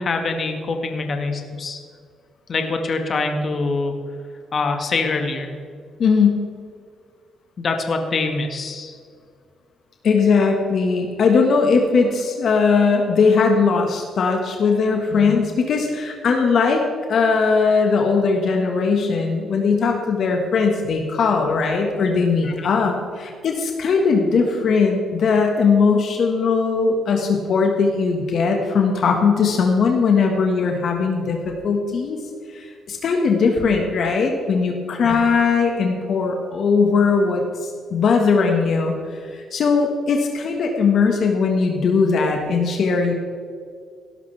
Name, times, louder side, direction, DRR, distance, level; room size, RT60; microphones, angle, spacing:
voice 1, 0.0-1.8 2.5-3.9 4.5-5.5 7.6-9.0 15.1-15.3 22.5-22.7 35.0-35.2, left 3 dB, 45° left, 4 dB, 1.8 m, -24 dB
voice 2, 6.0-6.4 10.0-32.2 32.5-43.1, left 5 dB, 60° left, 2 dB, 1.6 m, -19 dB
17.5 x 12.0 x 3.5 m, 2.1 s
cardioid pair, 90°, 0 cm